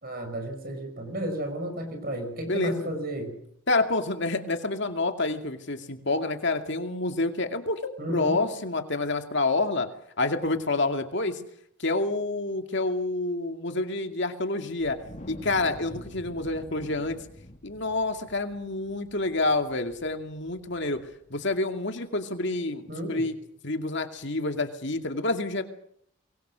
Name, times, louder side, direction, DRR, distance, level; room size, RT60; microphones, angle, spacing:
voice 1, 0.0-3.4 8.0-8.4 22.9-23.3, right 1 dB, 45° right, 5 dB, 5.8 m, -33 dB
voice 2, 2.5-2.9 3.7-9.9 10.2-11.4 11.8-15.0 15.3-17.2 17.6-21.0 21.3-23.3 23.6-25.6, left 2 dB, 55° left, 6 dB, 2.4 m, -28 dB
Wind, 14.8-21.3, left 1 dB, 35° left, 3.5 m, -47 dB
24.0 x 23.0 x 6.4 m, 0.69 s
head